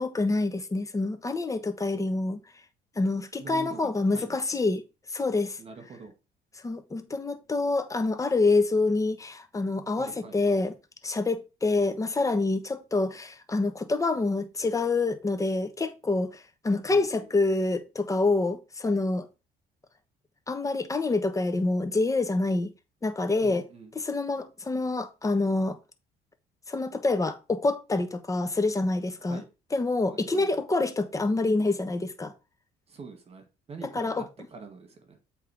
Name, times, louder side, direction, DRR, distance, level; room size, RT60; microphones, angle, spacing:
voice 1, 0.0-2.4 3.0-4.8 5.1-5.6 6.6-10.7 11.0-19.3 20.5-22.7 23.0-23.6 23.9-25.8 26.7-29.4 29.7-32.3 33.8-34.2, left 3 dB, 20° left, 1.1 m, -27 dB
voice 2, 3.4-4.4 5.6-6.1 10.0-10.4 16.9-17.3 23.4-23.9 29.2-29.5 30.1-30.5 32.9-34.3 34.5-35.2, right 4 dB, 35° right, 2.0 m, -44 dB
7.7 x 3.7 x 4.9 m
cardioid pair, 110°, 17 cm